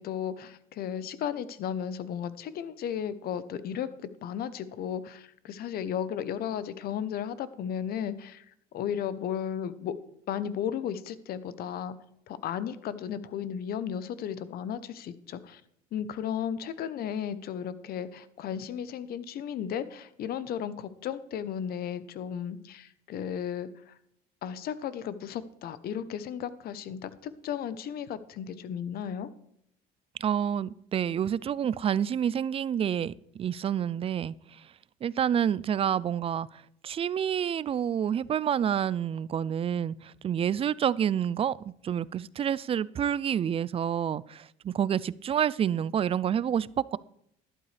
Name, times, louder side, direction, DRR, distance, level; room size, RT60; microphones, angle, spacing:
voice 1, 0.0-8.4 8.7-9.9 10.3-12.0 12.3-15.6 15.9-23.9 24.4-29.3, left 9 dB, 65° left, 14 dB, 0.9 m, -34 dB
voice 2, 30.2-34.3 35.0-41.6 41.8-47.0, right 9 dB, 35° right, 21 dB, 0.3 m, -28 dB
12.0 x 11.0 x 3.3 m, 0.73 s
cardioid pair, 110°, 17 cm